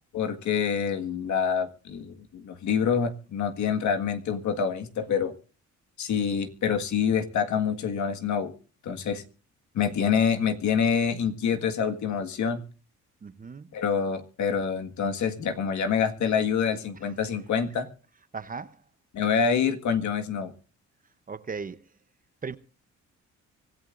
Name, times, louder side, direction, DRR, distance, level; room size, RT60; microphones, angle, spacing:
voice 1, 0.1-5.3 6.0-8.5 8.8-9.2 9.7-12.6 13.7-17.9 19.1-20.5, left 7 dB, 70° left, 1.8 m, -26 dB
voice 2, 13.2-13.7 18.3-18.7 21.3-21.8 22.4-22.6, right 5 dB, 30° right, 0.8 m, -36 dB
25.0 x 14.0 x 2.5 m
cardioid pair, 90°, 30 cm